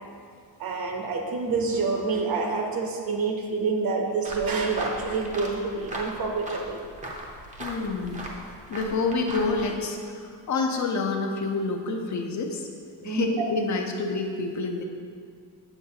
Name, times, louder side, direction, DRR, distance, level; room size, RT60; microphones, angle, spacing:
voice 1, 0.6-6.8 13.0-13.4, right 4 dB, 55° right, 2 dB, 0.9 m, -27 dB
sound 1, 4.2-9.7, right 1 dB, 15° right, 0.6 m, -38 dB
voice 2, 7.6-8.3 8.7-12.7 13.0-14.8, left 3 dB, 45° left, 3 dB, 0.5 m, -28 dB
7.6 x 7.0 x 2.8 m, 2.1 s
cardioid pair, 180°, 43 cm